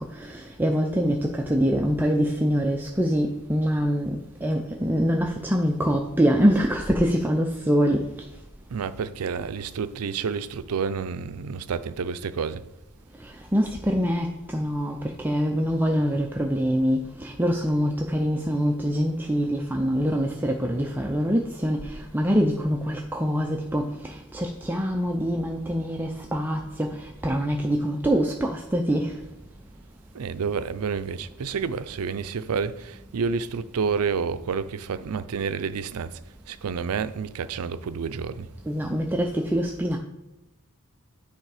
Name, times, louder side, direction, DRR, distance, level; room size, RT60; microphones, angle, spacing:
voice 1, 0.2-4.1 4.4-8.0 13.5-15.0 15.2-23.9 24.3-26.9 27.2-29.1 38.7-40.0, equal, 10° right, 0.4 m, -24 dB
voice 2, 8.7-12.6 30.1-36.2 36.5-38.5, right 5 dB, 75° right, 0.5 m, -29 dB
9.1 x 3.5 x 4.9 m
head